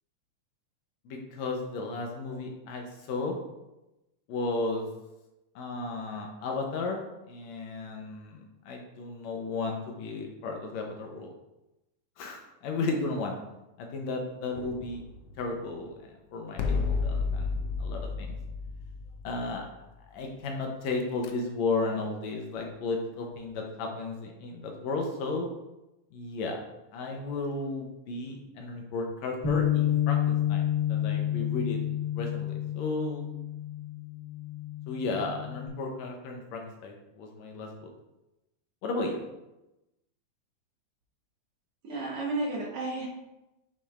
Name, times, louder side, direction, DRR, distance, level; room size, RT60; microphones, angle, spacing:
voice 1, 1.1-3.4 4.3-4.9 5.6-7.0 7.3-11.3 12.2-13.4 13.8-15.0 15.4-17.5 17.8-18.4 19.2-19.6 20.1-25.5 26.1-26.6 26.9-31.8 32.2-33.3 34.9-37.9 38.8-39.2, left 3 dB, 70° left, 1 dB, 1.9 m, -34 dB
sound 1, 14.5-15.8 16.6-19.9 21.0-21.3, left 4 dB, 90° left, 1.3 m, -32 dB
Bass guitar, 29.4-35.7, left 11 dB, 25° left, 1.3 m, -29 dB
voice 2, 41.8-43.1, right 2 dB, 60° right, -3 dB, 1.9 m, -32 dB
7.5 x 6.6 x 2.4 m, 0.97 s
omnidirectional pair, 3.4 m